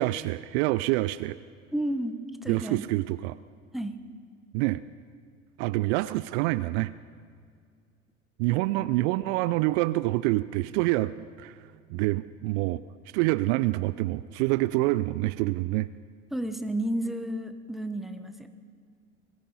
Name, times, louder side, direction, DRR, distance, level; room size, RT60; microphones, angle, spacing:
voice 1, 0.0-1.4 2.5-3.4 4.5-4.8 5.6-6.9 8.4-11.6 11.9-12.8 13.1-15.9, right 19 dB, 60° right, 15 dB, 0.5 m, -26 dB
voice 2, 1.7-2.9 3.7-3.9 16.3-18.5, right 1 dB, ahead, 7 dB, 1.0 m, -32 dB
22.0 x 13.5 x 4.1 m, 2.1 s
hypercardioid pair, 75°, 39 cm